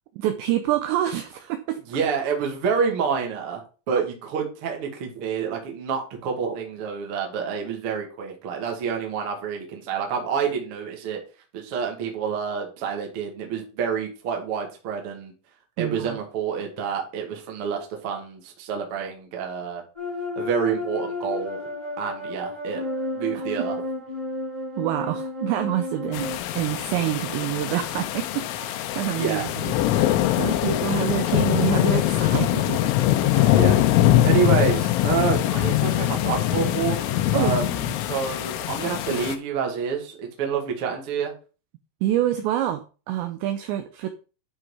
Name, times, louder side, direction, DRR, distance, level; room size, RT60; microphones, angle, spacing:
voice 1, 0.2-1.8 15.8-16.2 23.3-23.4 24.8-26.3 26.6-32.8 33.3-33.6 34.3-34.5 37.3-37.6 37.9-38.0 42.0-44.1, right 12 dB, 90° right, 8 dB, 2.5 m, -27 dB
voice 2, 1.9-11.2 11.5-15.3 15.8-19.8 20.3-21.6 22.0-22.8 23.1-23.8 29.2-29.4 33.5-33.8 34.2-41.3, right 6 dB, 70° right, 2 dB, 1.3 m, -28 dB
sound 1, 19.9-26.4, left 2 dB, 10° right, 1.4 m, -32 dB
sound 2, 26.1-39.4, left 13 dB, 85° left, 3.0 m, -22 dB
11.0 x 4.1 x 4.8 m, 0.35 s
omnidirectional pair, 5.9 m